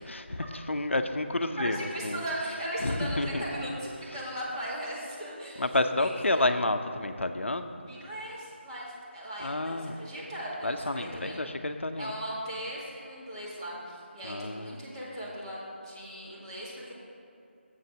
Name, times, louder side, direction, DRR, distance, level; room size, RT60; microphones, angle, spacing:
voice 1, 0.1-2.2 2.8-3.4 5.6-7.7 9.4-9.9 10.6-12.1 14.2-14.7, left 2 dB, 80° left, 8 dB, 0.6 m, -30 dB
voice 2, 1.6-5.7 6.0-6.5 7.9-11.4 12.0-16.9, equal, 25° right, -7 dB, 2.1 m, -38 dB
7.4 x 6.5 x 6.3 m, 2.7 s
figure-of-eight pair, 165°, 7 cm